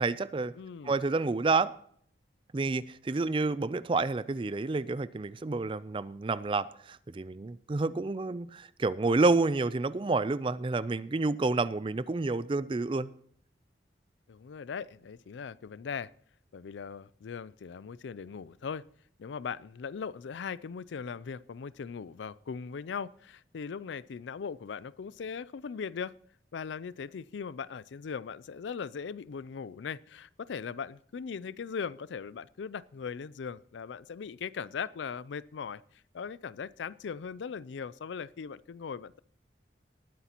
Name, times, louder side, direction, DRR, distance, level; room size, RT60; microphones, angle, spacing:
voice 1, 0.0-0.5 0.8-1.7 2.5-13.1, right 3 dB, 30° right, 0.4 m, -29 dB
voice 2, 0.6-0.9 14.3-16.1 16.5-18.8 19.2-26.1 26.5-35.8 36.1-39.2, left 6 dB, 90° left, 0.4 m, -39 dB
19.5 x 9.8 x 2.9 m
head